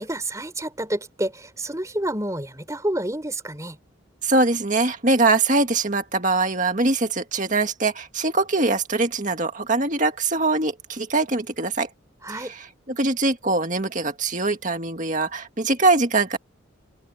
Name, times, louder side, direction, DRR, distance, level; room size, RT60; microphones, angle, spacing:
voice 1, 0.0-3.8 12.2-12.5, right 1 dB, 15° right, 4.1 m, -29 dB
voice 2, 4.2-11.9 12.4-12.5 13.0-16.4, right 3 dB, 40° right, 1.9 m, -22 dB
head